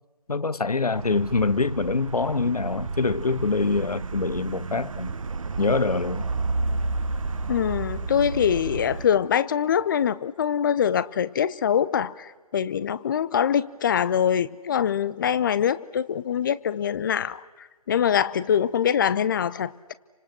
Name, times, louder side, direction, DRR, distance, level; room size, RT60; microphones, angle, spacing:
voice 1, 0.3-5.1 5.6-6.3, left 3 dB, 80° left, 0.9 m, -25 dB
sound 1, 0.9-9.1, right 3 dB, 60° right, 1.4 m, -31 dB
voice 2, 7.5-17.4 17.9-19.9, left 8 dB, 35° left, 0.7 m, -24 dB
29.5 x 26.0 x 6.2 m
figure-of-eight pair, 140°, 19 cm